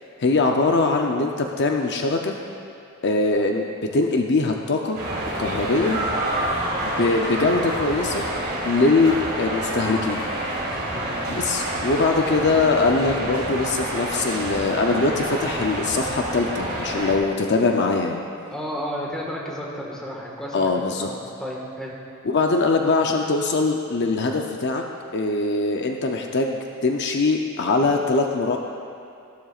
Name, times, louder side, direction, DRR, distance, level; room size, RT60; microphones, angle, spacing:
voice 1, 0.2-2.3 3.0-5.0 5.4-6.0 6.8-8.3 8.6-10.2 11.3-18.2 20.5-21.1 22.2-24.8 25.1-28.6, left 3 dB, 55° left, 2 dB, 0.6 m, -22 dB
sound 1, 4.9-17.1, right 1 dB, 50° right, 2.2 m, -28 dB
voice 2, 10.9-11.2 18.5-21.9, equal, 5° left, -4 dB, 1.6 m, -33 dB
14.5 x 12.5 x 2.4 m, 2.5 s
head